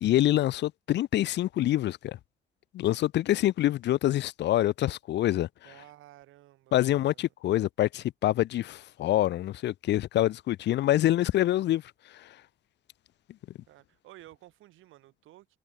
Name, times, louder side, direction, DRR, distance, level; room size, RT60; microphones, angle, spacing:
voice 1, 0.0-2.2 2.7-5.5 6.7-11.8 12.1-12.4, left 13 dB, 60° left, 0.4 m, -26 dB
voice 2, 5.6-7.3 13.7-15.6, right 15 dB, 90° right, 7.3 m, -54 dB
cardioid pair, 90°, 20 cm